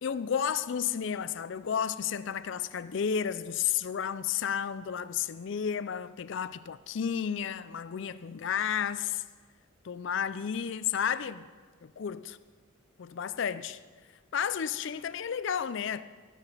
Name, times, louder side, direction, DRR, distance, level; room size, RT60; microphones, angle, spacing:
voice 1, 0.0-9.2 9.8-11.5 11.8-12.4 13.0-13.8 14.3-16.0, left 8 dB, 55° left, 0.4 m, -32 dB
13.5 x 8.9 x 5.7 m
head